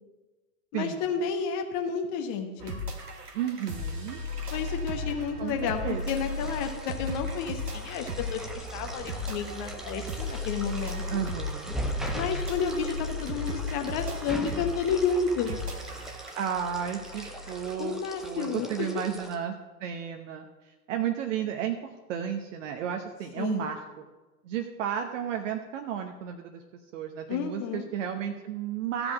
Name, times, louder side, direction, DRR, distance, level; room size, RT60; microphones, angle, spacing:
voice 1, 0.7-2.8 4.5-11.2 12.1-15.6 17.8-19.0 23.4-23.7 27.3-27.8, left 6 dB, 40° left, 5 dB, 1.3 m, -31 dB
sound 1, 2.6-17.7, left 1 dB, 85° right, 1.3 m, -36 dB
voice 2, 3.3-4.2 5.4-6.0 11.1-11.8 16.3-20.5 20.9-24.1 24.4-26.6 26.9-29.1, right 9 dB, 50° right, 4 dB, 1.0 m, -33 dB
sound 2, 5.8-19.4, equal, ahead, 0.4 m, -41 dB
14.5 x 5.0 x 7.2 m, 1.2 s
figure-of-eight pair, 95°, 46 cm